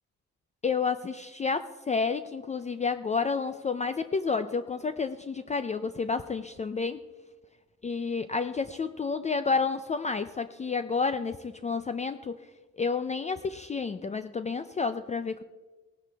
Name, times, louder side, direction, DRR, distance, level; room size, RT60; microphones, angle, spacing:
voice 1, 0.6-7.0 7.8-12.4 12.8-15.4, left 5 dB, 25° left, 11 dB, 0.4 m, -30 dB
18.5 x 10.5 x 3.4 m, 1.2 s
cardioid pair, 125°, 30 cm